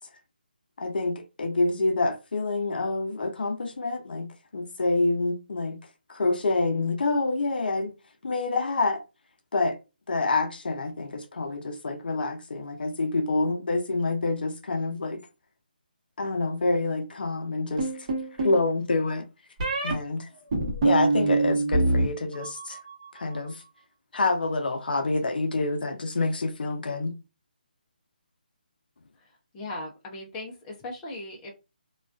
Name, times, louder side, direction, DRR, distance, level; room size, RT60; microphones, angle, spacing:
voice 1, 0.8-4.3 4.5-5.8 6.1-7.9 8.2-9.0 9.5-9.8 10.1-15.2 16.2-18.1 18.4-19.3 19.8-20.3 20.8-22.8 23.1-23.6 24.1-27.1, left 3 dB, 70° left, 0.6 m, -27 dB
sound 1, 17.8-18.6 19.6-19.9 20.5-22.1 22.3-22.9, right 2 dB, 40° right, 1.0 m, -24 dB
voice 2, 29.5-31.5, left 2 dB, 15° left, 0.5 m, -38 dB
2.4 x 2.3 x 2.2 m
hypercardioid pair, 160°, 5 cm